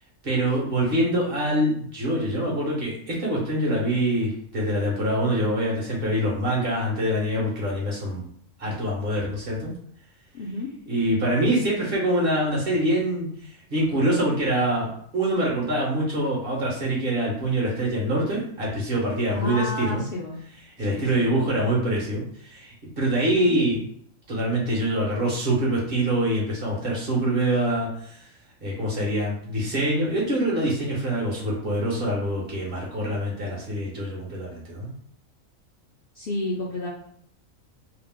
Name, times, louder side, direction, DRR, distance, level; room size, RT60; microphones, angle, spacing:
voice 1, 0.2-8.2 8.6-9.7 10.9-20.0 20.8-23.8 24.3-28.3 28.6-34.9, right 1 dB, 50° right, -4 dB, 1.0 m, -25 dB
voice 2, 0.8-1.4 10.3-10.7 19.3-20.4 20.8-21.5 23.3-23.6 36.1-36.9, left 1 dB, 60° left, -4 dB, 0.6 m, -32 dB
2.8 x 2.0 x 3.4 m, 0.65 s
omnidirectional pair, 1.4 m